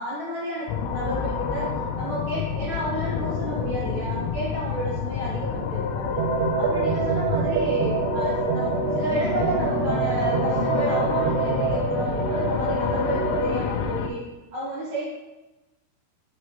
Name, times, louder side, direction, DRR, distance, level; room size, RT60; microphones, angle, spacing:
voice 1, 0.0-6.3 6.6-14.2 14.5-15.0, right 1 dB, 50° right, -8 dB, 2.3 m, -31 dB
sound 1, 0.7-14.1, left 6 dB, 90° left, 3.2 m, -28 dB
sound 2, 6.2-13.6, right 6 dB, 80° right, 2.9 m, -26 dB
10.5 x 3.9 x 3.3 m, 1.1 s
omnidirectional pair, 5.9 m